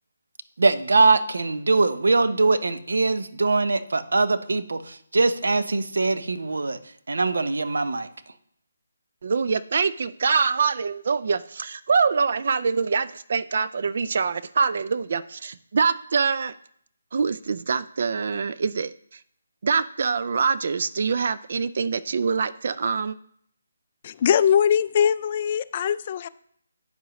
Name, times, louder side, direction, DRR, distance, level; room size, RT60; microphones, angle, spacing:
voice 1, 0.6-6.8 7.1-8.1, right 3 dB, 80° right, 11 dB, 0.7 m, -22 dB
voice 2, 9.2-16.5 17.1-19.2 19.6-23.2, right 5 dB, 55° right, 14 dB, 0.3 m, -24 dB
voice 3, 24.0-26.3, left 8 dB, 35° left, 15 dB, 0.3 m, -21 dB
9.0 x 7.7 x 3.1 m, 0.67 s
hypercardioid pair, 160°, 0 cm